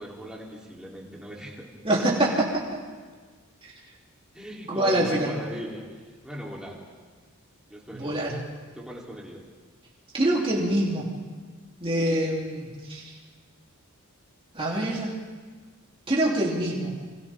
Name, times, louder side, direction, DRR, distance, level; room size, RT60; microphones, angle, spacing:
voice 1, 0.0-1.7 4.3-5.8 6.2-6.8 7.7-8.3 8.7-9.4 14.8-14.9, equal, 5° right, -4 dB, 3.5 m, -39 dB
voice 2, 1.8-2.5 3.6-3.7 4.7-5.3 7.9-8.4 10.1-11.1 11.8-13.1 14.5-15.1 16.1-17.0, right 1 dB, 25° right, -4 dB, 3.4 m, -25 dB
29.0 x 25.5 x 3.7 m, 1.5 s
head